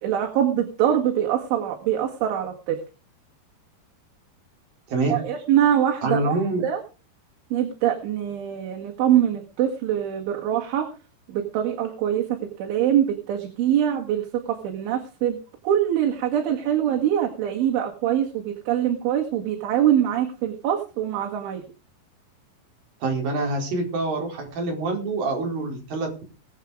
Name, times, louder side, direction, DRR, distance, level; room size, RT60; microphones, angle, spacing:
voice 1, 0.0-2.8 5.1-6.4 6.6-6.8 7.5-10.9 11.3-14.3 14.6-15.4 15.6-21.6, right 10 dB, 90° right, 2 dB, 4.4 m, -23 dB
voice 2, 4.9-5.2 6.0-6.6 23.0-26.2, right 2 dB, 50° right, 1 dB, 6.0 m, -26 dB
21.5 x 7.8 x 5.0 m, 0.33 s
omnidirectional pair, 5.3 m